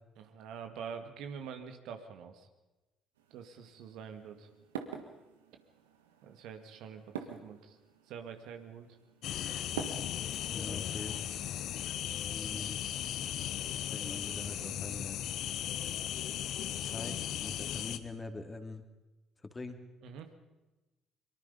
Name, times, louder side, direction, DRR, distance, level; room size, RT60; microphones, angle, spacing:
voice 1, 0.2-2.5 3.3-4.5 6.2-7.8 8.1-8.9 12.6-12.7 20.0-20.3, right 7 dB, 65° right, 6 dB, 2.0 m, -45 dB
sound 1, 3.2-10.5, right 7 dB, 80° right, 1.7 m, -47 dB
sound 2, 9.2-18.0, left 11 dB, 60° left, 1.1 m, -37 dB
voice 2, 10.5-11.2 12.3-12.8 13.9-15.2 16.8-18.9 19.4-19.8, left 3 dB, 25° left, 6 dB, 2.9 m, -43 dB
23.5 x 23.5 x 5.3 m, 1.1 s
figure-of-eight pair, 50°, 0 cm